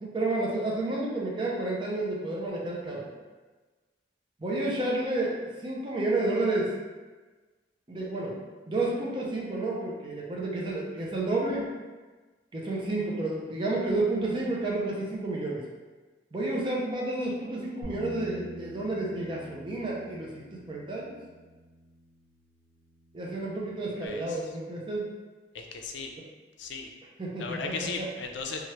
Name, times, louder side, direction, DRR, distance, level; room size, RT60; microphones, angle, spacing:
voice 1, 0.0-3.1 4.4-6.7 7.9-8.4 8.7-11.7 12.5-15.6 16.3-21.2 23.1-25.1 27.2-28.1, right 2 dB, 30° right, -4 dB, 0.5 m, -30 dB
Bass guitar, 17.8-24.1, left 1 dB, 80° right, 0.9 m, -46 dB
voice 2, 24.0-24.4 25.5-26.1 26.6-26.9 27.4-28.7, left 4 dB, 75° left, 3 dB, 0.4 m, -36 dB
3.1 x 2.4 x 2.9 m, 1.3 s
head